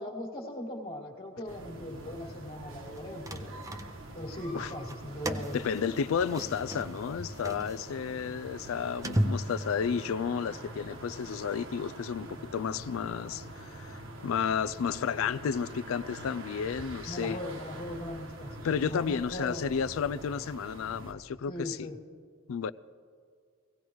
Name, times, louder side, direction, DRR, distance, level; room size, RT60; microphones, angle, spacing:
voice 1, 0.0-3.6 4.1-5.7 17.1-19.6 21.5-22.0, left 1 dB, 35° left, 1.7 m, -39 dB
sound 1, 1.5-21.1, right 1 dB, 65° right, 1.4 m, -45 dB
sound 2, 2.9-4.3 4.8-10.1, equal, 15° right, 0.6 m, -35 dB
voice 2, 5.5-17.4 18.6-21.9 22.5-22.7, left 7 dB, 75° left, 0.4 m, -32 dB
17.5 x 17.0 x 3.1 m
head